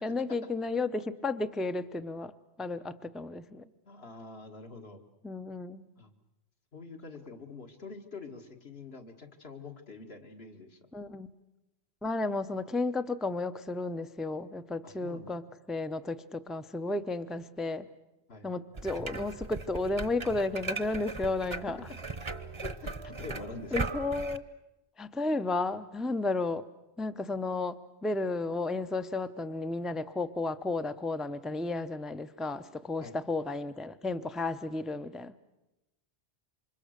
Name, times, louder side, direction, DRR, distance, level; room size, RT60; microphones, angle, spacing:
voice 1, 0.0-2.3 2.6-3.6 5.2-5.8 10.9-11.3 12.0-17.9 18.4-21.9 23.7-24.4 25.0-26.6 27.0-35.4, left 2 dB, ahead, 11 dB, 0.6 m, -33 dB
voice 2, 3.9-5.0 6.0-6.1 6.7-10.8 14.8-15.3 18.3-18.5 21.8-21.9 22.6-23.9 33.0-33.2, left 4 dB, 65° left, 4 dB, 2.2 m, -45 dB
sound 1, 18.7-24.4, right 3 dB, 30° right, 0.9 m, -38 dB
28.0 x 25.5 x 6.6 m, 0.93 s
omnidirectional pair, 1.1 m